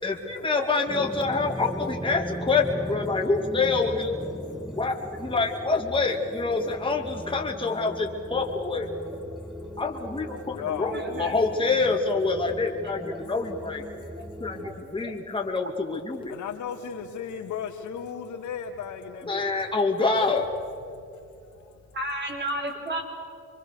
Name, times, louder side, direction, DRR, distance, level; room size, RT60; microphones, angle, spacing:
voice 1, 0.0-4.2 4.7-9.0 9.8-13.8 14.4-16.4 19.2-20.5, left 3 dB, 15° left, 1 dB, 2.4 m, -26 dB
sound 1, 0.9-14.7, equal, ahead, 1.9 m, -38 dB
voice 2, 9.3-9.7 10.0-10.5 10.8-11.4 13.9-14.3 14.6-15.1 15.4-15.5 18.7-18.8 19.1-19.6 21.9-23.0, right 1 dB, 35° right, 3 dB, 4.9 m, -35 dB
voice 3, 10.5-10.9 16.3-19.5, left 7 dB, 75° left, 4 dB, 2.6 m, -34 dB
26.0 x 23.0 x 6.6 m, 2.5 s
cardioid pair, 90°, 30 cm